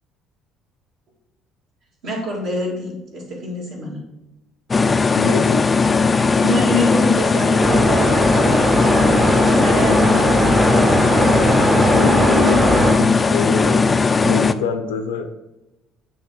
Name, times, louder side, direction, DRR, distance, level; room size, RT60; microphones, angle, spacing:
voice 1, 2.0-4.0 6.4-10.6, equal, 60° right, -2 dB, 1.9 m, -26 dB
sound 1, 4.7-14.5, left 4 dB, 25° left, 0.3 m, -17 dB
voice 2, 5.1-5.6 11.7-13.9 14.2-15.2, left 5 dB, 75° left, 6 dB, 0.6 m, -25 dB
sound 2, 7.6-13.0, right 1 dB, 30° right, 1.0 m, -19 dB
8.7 x 2.9 x 3.8 m, 0.95 s
figure-of-eight pair, 55°, 0 cm